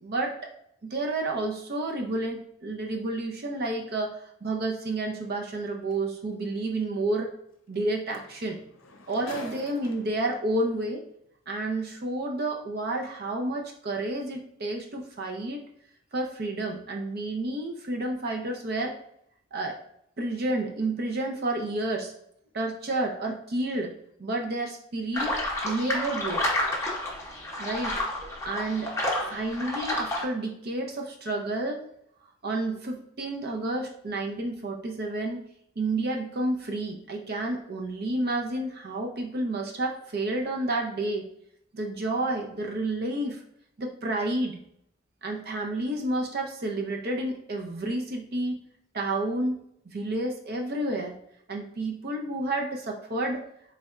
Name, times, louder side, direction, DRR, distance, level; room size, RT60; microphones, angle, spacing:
voice 1, 0.0-0.5 0.8-7.3 7.7-8.6 9.1-11.0 11.5-15.6 16.1-19.0 19.5-19.8 20.2-22.1 22.5-23.9 24.2-25.4 25.6-26.4 27.6-28.0 28.4-28.9 29.2-31.8 32.4-35.4 35.8-41.3 41.7-43.4 43.8-44.6 45.2-48.6 48.9-51.2 51.5-53.5, right 2 dB, 50° right, 1 dB, 0.5 m, -30 dB
sound 1, 5.9-6.0 7.7-7.8 8.1-10.3 11.3-11.4, left 1 dB, 75° left, 0.6 m, -44 dB
sound 2, 25.1-30.2, left 1 dB, 15° left, 0.7 m, -30 dB
4.0 x 3.3 x 2.4 m, 0.70 s
head